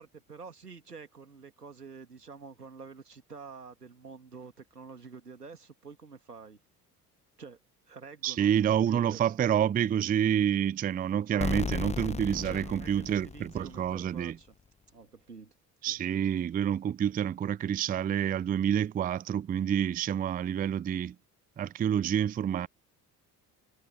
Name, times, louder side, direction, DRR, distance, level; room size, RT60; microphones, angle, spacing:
voice 1, 0.0-6.6 7.4-7.6 7.9-9.3 11.3-11.6 12.4-14.6 14.9-15.5 15.9-16.2, right 5 dB, 85° right, 3.0 m, -48 dB
voice 2, 8.2-14.3 15.8-21.1 21.6-22.7, right 9 dB, 20° right, 0.5 m, -28 dB
sound 1, 11.4-14.1, left 5 dB, 15° left, 0.8 m, -35 dB
figure-of-eight pair, 50°, 46 cm